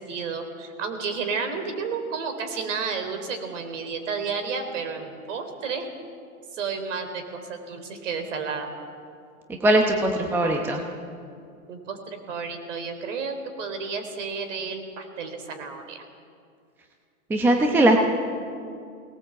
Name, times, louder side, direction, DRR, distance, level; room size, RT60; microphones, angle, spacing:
voice 1, 0.0-5.9 6.5-8.7 11.7-12.0 12.3-16.0, right 5 dB, 55° right, 6 dB, 3.9 m, -31 dB
voice 2, 9.5-10.8 17.3-18.0, right 1 dB, 5° right, 2 dB, 0.9 m, -20 dB
23.0 x 19.0 x 7.9 m, 2.3 s
hypercardioid pair, 150°, 44 cm